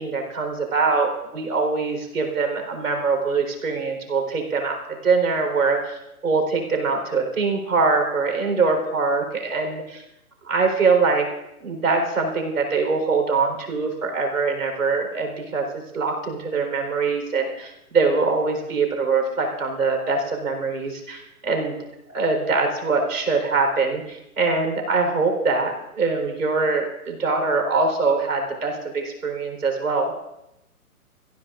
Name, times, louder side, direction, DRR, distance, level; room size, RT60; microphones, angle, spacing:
voice 1, 0.0-4.7 5.0-10.0 10.5-11.3 11.6-21.8 22.1-30.1, right 4 dB, 85° right, 2 dB, 4.3 m, -23 dB
23.0 x 15.0 x 2.6 m, 0.86 s
hypercardioid pair, 150°, 44 cm